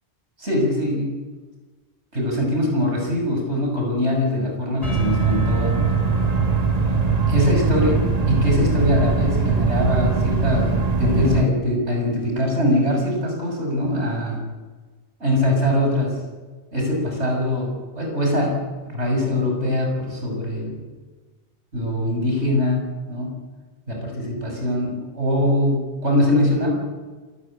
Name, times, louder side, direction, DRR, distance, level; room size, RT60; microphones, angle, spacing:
voice 1, 0.4-1.2 2.1-5.8 7.3-14.4 15.2-16.1 16.7-20.9 21.7-23.3 23.9-26.7, left 1 dB, 85° right, 1 dB, 6.8 m, -22 dB
Percussion / Church bell, 4.8-9.2, left 1 dB, 80° left, 5.2 m, -43 dB
sound 1, 4.8-11.5, right 5 dB, 35° right, 1.9 m, -21 dB
27.5 x 14.5 x 8.9 m, 1.4 s
omnidirectional pair, 1.1 m